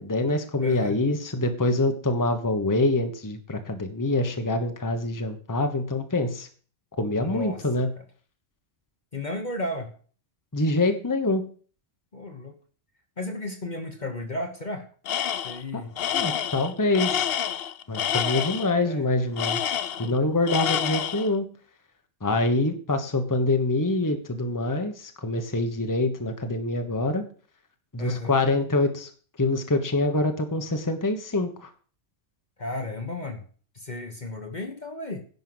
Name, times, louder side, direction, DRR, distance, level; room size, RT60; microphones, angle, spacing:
voice 1, 0.0-6.5 7.0-7.9 10.5-11.4 15.7-15.8 16.1-17.3 17.9-21.5 22.2-27.2 27.9-29.1 29.4-31.7, left 2 dB, 15° left, 6 dB, 1.2 m, -25 dB
voice 2, 0.6-1.0 7.2-8.0 9.1-9.9 12.1-12.6 13.2-14.9 15.4-15.9 18.8-19.1 19.9-20.3 28.0-28.3 32.6-33.4 33.7-35.2, left 2 dB, 40° left, 6 dB, 1.3 m, -34 dB
Tools, 15.1-15.6 16.0-18.7 19.4-20.2 20.5-21.3, left 9 dB, 60° left, 0.8 m, -28 dB
11.0 x 5.6 x 7.8 m, 0.42 s
omnidirectional pair, 1.3 m